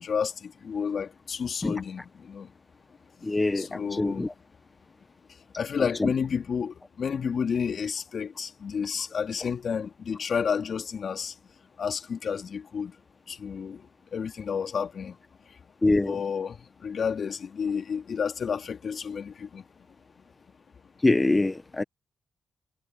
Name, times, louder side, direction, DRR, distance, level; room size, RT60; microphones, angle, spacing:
voice 1, 0.0-2.5 3.2-3.3 3.5-4.2 5.5-11.4 11.8-12.9 13.3-15.2 15.5-15.6 15.9-19.6, left 6 dB, 60° left, 3.2 m, -31 dB
voice 2, 3.2-4.3 15.8-16.1 21.0-21.8, left 2 dB, 25° left, 1.2 m, -24 dB
supercardioid pair, 60°, 0 cm